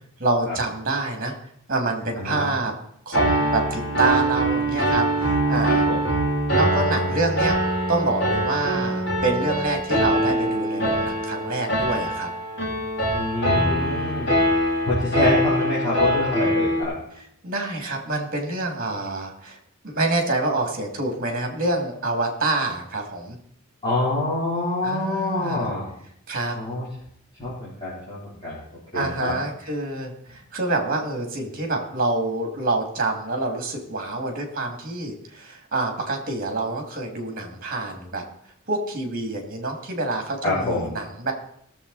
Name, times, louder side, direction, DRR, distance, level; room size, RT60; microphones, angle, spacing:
voice 1, 0.2-1.3 1.7-2.7 3.1-5.8 6.5-7.6 7.9-12.3 13.9-14.4 17.4-19.6 19.8-23.4 24.8-25.7 26.3-26.6 28.9-38.2 38.7-41.3, right 2 dB, 45° right, 3 dB, 2.6 m, -26 dB
voice 2, 2.2-2.5 5.7-6.0 13.1-14.3 14.8-16.9 23.8-25.8 26.6-26.9 27.4-28.6 28.9-29.3 40.4-40.9, left 2 dB, 25° left, -10 dB, 3.9 m, -26 dB
Piano, 3.1-16.8, right 1 dB, 55° left, 3.3 m, -23 dB
17.5 x 7.3 x 4.2 m, 0.71 s
head